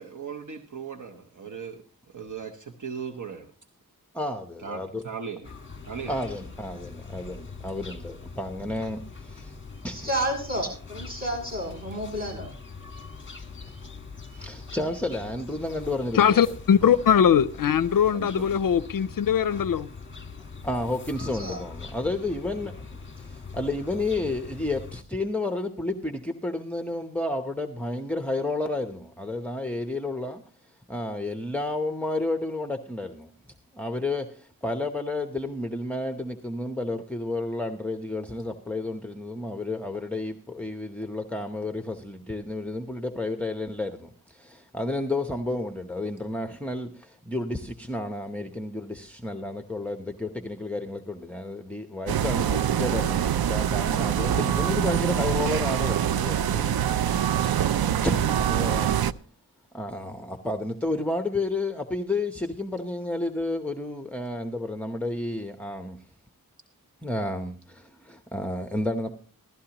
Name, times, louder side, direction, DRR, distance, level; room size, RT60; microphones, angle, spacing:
voice 1, 0.0-1.8 2.1-3.5 4.6-5.5 5.8-6.1 11.9-12.0 16.8-17.0 18.1-18.6, right 6 dB, 55° right, 1.0 m, -37 dB
voice 2, 4.1-5.0 6.1-9.6 9.8-10.1 13.7-13.8 14.3-16.5 20.6-33.3 33.7-56.8 57.1-57.7 58.0-59.0 59.7-66.0 67.0-69.1, left 2 dB, 5° left, 0.8 m, -31 dB
sound 1, 5.4-25.0, left 4 dB, 30° left, 1.3 m, -42 dB
voice 3, 9.9-12.5 21.2-21.6, right 1 dB, 25° right, 8.0 m, -31 dB
voice 4, 16.1-19.9, left 8 dB, 65° left, 0.5 m, -21 dB
sound 2, 52.1-59.1, right 9 dB, 85° right, 0.5 m, -24 dB
16.0 x 13.0 x 2.9 m
wide cardioid pair, 75°, 36 cm